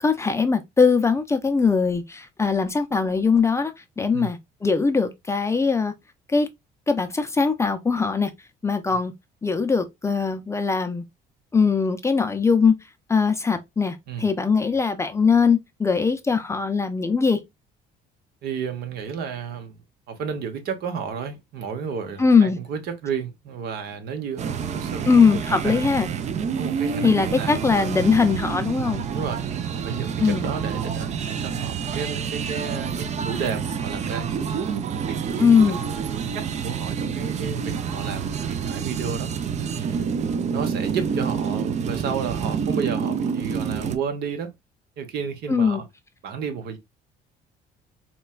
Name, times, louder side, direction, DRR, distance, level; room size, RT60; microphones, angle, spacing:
voice 1, 0.0-5.9 6.3-6.5 6.9-8.3 8.6-9.1 9.4-11.0 11.5-12.7 13.1-17.4 22.2-22.6 25.1-26.1 27.0-29.0 30.2-30.5 35.4-35.8 45.5-45.8, left 5 dB, 15° left, 0.4 m, -21 dB
voice 2, 18.4-19.8 20.1-25.9 26.5-27.6 29.1-29.4 29.7-34.3 34.9-35.4 36.3-39.3 39.7-40.0 40.5-44.5 45.0-45.9 46.2-46.8, right 6 dB, 70° right, 0.9 m, -32 dB
sound 1, 24.4-44.0, right 7 dB, 45° right, 0.4 m, -28 dB
4.1 x 2.2 x 2.3 m
cardioid pair, 110°, 17 cm